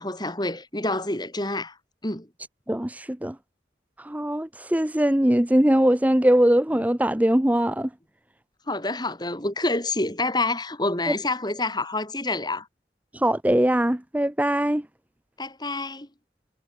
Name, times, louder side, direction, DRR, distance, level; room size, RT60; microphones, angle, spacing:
voice 1, 0.0-1.8 2.0-2.3 8.7-12.7 15.4-16.1, left 2 dB, 20° left, 4.8 m, -27 dB
voice 2, 2.7-3.4 4.0-7.9 11.1-11.2 13.1-14.8, right 1 dB, 10° right, 0.7 m, -21 dB
head